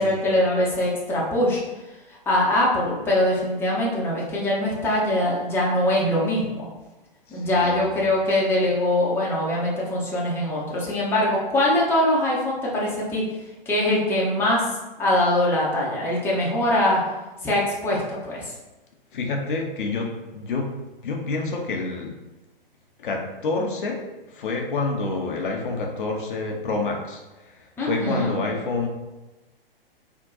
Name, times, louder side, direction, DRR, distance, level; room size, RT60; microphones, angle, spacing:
voice 1, 0.0-1.6 2.3-6.7 7.3-13.2 13.7-14.6 15.0-17.0 17.4-18.5 27.8-28.3, left 1 dB, 10° left, -6 dB, 0.7 m, -22 dB
voice 2, 7.3-7.9 10.8-10.9 19.1-20.7 21.0-22.2 23.0-24.0 24.3-28.9, left 3 dB, 60° left, 1 dB, 0.7 m, -28 dB
3.5 x 2.2 x 3.9 m, 1.1 s
figure-of-eight pair, 115°, 29 cm